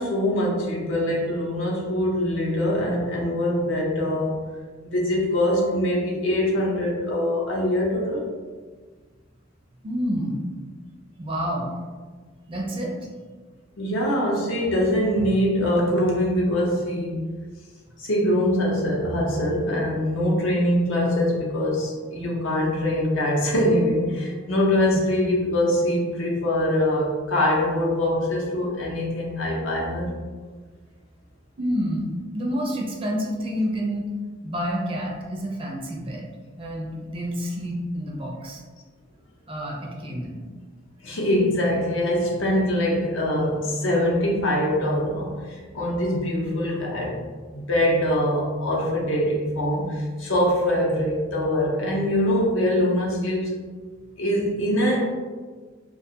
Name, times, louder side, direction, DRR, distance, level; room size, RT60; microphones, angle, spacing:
voice 1, 0.0-4.4 4.8-8.2 13.8-17.2 18.0-30.1 41.0-47.1 47.5-53.6 54.2-55.0, left 1 dB, 70° left, -4 dB, 0.7 m, -23 dB
voice 2, 9.8-10.4 11.2-11.7 12.5-13.0 31.6-34.0 34.4-36.3 36.6-38.6 39.5-40.4, equal, 30° right, -1 dB, 0.4 m, -28 dB
2.4 x 2.3 x 2.7 m, 1.4 s
head